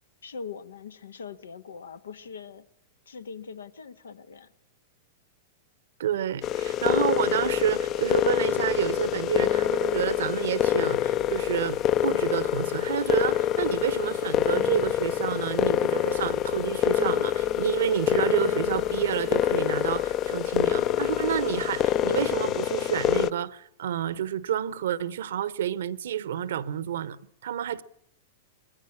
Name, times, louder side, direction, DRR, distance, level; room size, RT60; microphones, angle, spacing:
voice 1, 0.2-2.7 3.1-4.5, left 6 dB, 75° left, 1.2 m, -41 dB
voice 2, 6.0-27.8, right 10 dB, 65° right, 0.9 m, -29 dB
sound 1, 6.4-23.3, left 11 dB, 35° left, 0.7 m, -26 dB
21.5 x 13.5 x 9.7 m
figure-of-eight pair, 100°, 0 cm